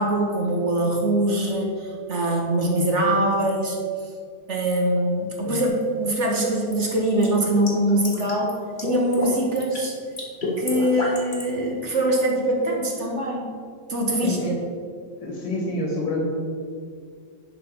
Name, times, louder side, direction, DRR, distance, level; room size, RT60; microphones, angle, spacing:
voice 1, 0.0-3.8 4.5-8.6 8.8-9.9 10.6-13.5 13.9-14.6, right 1 dB, 45° right, 0 dB, 1.4 m, -23 dB
sound 1, 5.6-5.8 6.7-8.5 8.8-9.3 9.6-9.9 10.2-11.5, left 3 dB, 30° left, 1.7 m, -29 dB
voice 2, 14.2-14.5 15.2-16.3, left 1 dB, 90° left, -1 dB, 2.7 m, -28 dB
11.0 x 3.9 x 6.7 m, 2.1 s
omnidirectional pair, 1.9 m